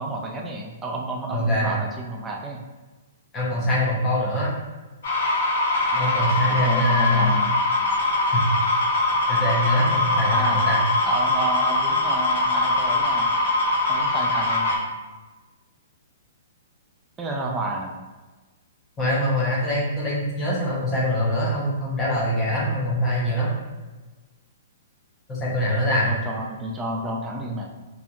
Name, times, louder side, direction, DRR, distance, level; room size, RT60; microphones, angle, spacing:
voice 1, 0.0-2.6 5.9-6.0 6.5-7.5 10.3-10.7 11.0-13.3 13.9-14.9 17.2-17.9 25.9-27.6, right 2 dB, 15° right, 0 dB, 0.3 m, -31 dB
voice 2, 1.3-1.7 3.3-4.5 5.9-7.4 8.3-8.5 9.3-10.8 19.0-23.5 25.3-26.1, left 1 dB, 15° left, -6 dB, 0.8 m, -23 dB
sound 1, 5.0-14.8, left 2 dB, 65° left, 1.0 m, -22 dB
2.8 x 2.5 x 2.3 m, 1.2 s
hypercardioid pair, 160°, 0 cm